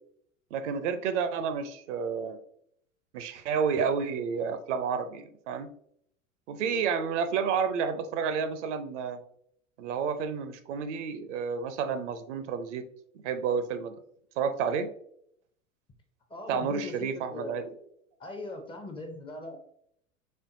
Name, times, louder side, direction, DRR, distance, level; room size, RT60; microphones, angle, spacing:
voice 1, 0.5-2.4 3.1-5.7 6.5-9.2 9.8-12.8 13.2-13.9 14.4-14.9 16.5-17.7, right 6 dB, 55° right, 9 dB, 0.6 m, -30 dB
voice 2, 16.3-17.6 18.2-19.6, left 2 dB, 15° left, 4 dB, 0.5 m, -40 dB
4.3 x 3.4 x 2.6 m, 0.68 s
figure-of-eight pair, 85°, 42 cm